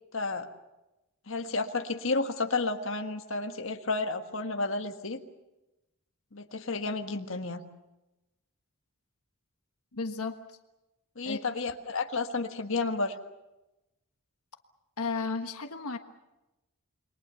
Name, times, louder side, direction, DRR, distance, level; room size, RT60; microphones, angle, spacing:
voice 1, 0.1-0.5 1.3-5.2 6.3-7.6 11.2-13.1, left 3 dB, 65° left, 5 dB, 1.6 m, -31 dB
voice 2, 9.9-10.6 11.2-11.4 15.0-16.0, left 4 dB, 80° left, 6 dB, 1.4 m, -34 dB
28.5 x 22.5 x 7.0 m, 0.99 s
head